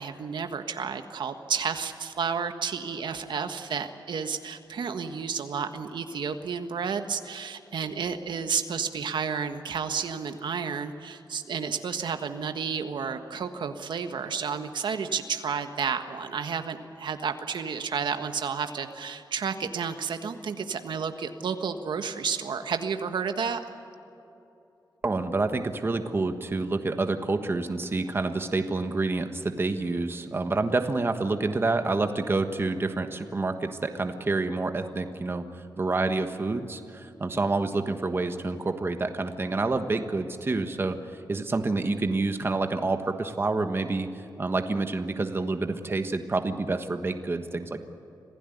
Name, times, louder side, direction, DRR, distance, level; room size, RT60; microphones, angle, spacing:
voice 1, 0.0-23.6, right 6 dB, 85° right, 7 dB, 1.5 m, -31 dB
voice 2, 25.0-35.4 35.8-40.9 41.3-44.1 44.4-47.8, right 3 dB, 30° right, 7 dB, 1.4 m, -28 dB
26.5 x 16.5 x 9.3 m, 2.9 s
wide cardioid pair, 140°, 8 cm